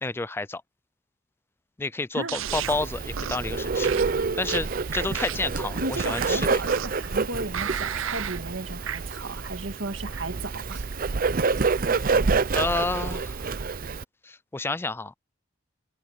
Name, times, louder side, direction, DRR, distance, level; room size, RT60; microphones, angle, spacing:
voice 1, 0.0-0.6 1.8-3.9 4.4-6.5 12.5-13.5 14.2-15.1, left 3 dB, 10° left, 0.4 m, -30 dB
sound 1, 2.3-2.8 3.2-3.5 3.8-5.6 6.0-7.1 7.5-8.4 8.9-9.0, right 9 dB, 85° right, 0.6 m, -33 dB
Bird, 2.4-14.0, right 4 dB, 45° right, 0.6 m, -28 dB
voice 2, 5.8-10.9, right 2 dB, 70° right, 2.4 m, -34 dB
head